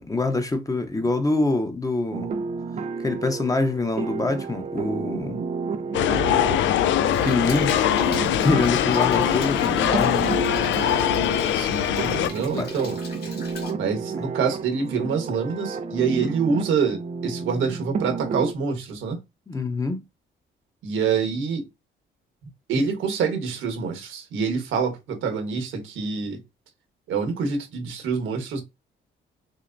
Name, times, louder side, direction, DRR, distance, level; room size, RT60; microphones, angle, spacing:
voice 1, 0.0-2.3 3.0-5.4 7.2-7.7 8.4-10.3 12.2-12.7 19.5-20.0, left 2 dB, 15° left, 0.7 m, -25 dB
sound 1, 2.1-18.5, right 5 dB, 35° right, 0.4 m, -31 dB
sound 2, 5.9-12.3, left 11 dB, 70° left, 0.4 m, -22 dB
Rain, 7.0-13.7, left 4 dB, 50° left, 2.2 m, -41 dB
voice 2, 11.5-13.0 13.8-19.2 20.8-21.7 22.7-26.4 27.1-28.6, right 5 dB, 80° right, 1.3 m, -26 dB
6.2 x 2.1 x 2.6 m
cardioid pair, 90°, 20 cm